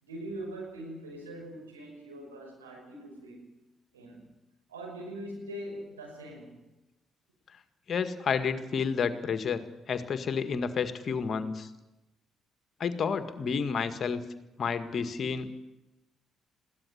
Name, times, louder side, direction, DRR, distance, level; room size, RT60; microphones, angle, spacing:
voice 1, 0.0-3.5 3.9-4.3 4.7-6.6, right 1 dB, 85° right, -1 dB, 5.8 m, -42 dB
voice 2, 7.9-11.7 12.8-14.2 14.6-15.5, left 6 dB, 50° left, 10 dB, 1.8 m, -30 dB
21.5 x 16.0 x 9.6 m, 1.0 s
figure-of-eight pair, 40°, 0 cm